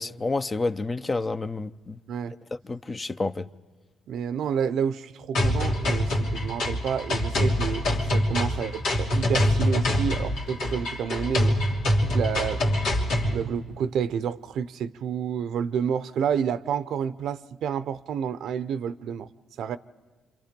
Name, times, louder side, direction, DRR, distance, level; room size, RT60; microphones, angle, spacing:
voice 1, 0.0-2.0 2.7-3.5, left 3 dB, 30° left, 0.7 m, -29 dB
voice 2, 4.1-7.8 8.1-11.6 12.0-12.6 13.3-19.3 19.6-19.8, right 7 dB, 75° right, 0.6 m, -29 dB
sound 1, 5.3-13.3, left 1 dB, 90° left, 3.2 m, -25 dB
28.0 x 26.0 x 5.3 m
cardioid pair, 90°, 0 cm